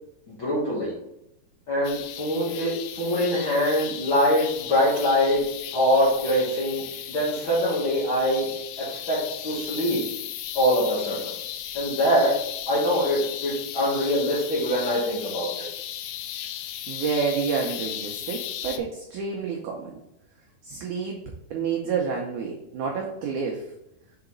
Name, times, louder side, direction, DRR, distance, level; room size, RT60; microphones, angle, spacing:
voice 1, 0.3-0.9 1.7-5.4 5.7-8.5 8.8-10.0 10.5-11.3 11.7-12.3 12.7-15.6, equal, 60° left, -7 dB, 1.3 m, -24 dB
sound 1, 1.8-18.8, left 11 dB, 80° left, 2.2 m, -36 dB
voice 2, 16.9-19.9 20.6-21.2 21.5-23.7, right 5 dB, 85° right, 0 dB, 1.7 m, -29 dB
7.0 x 3.9 x 3.8 m, 0.85 s
omnidirectional pair, 4.6 m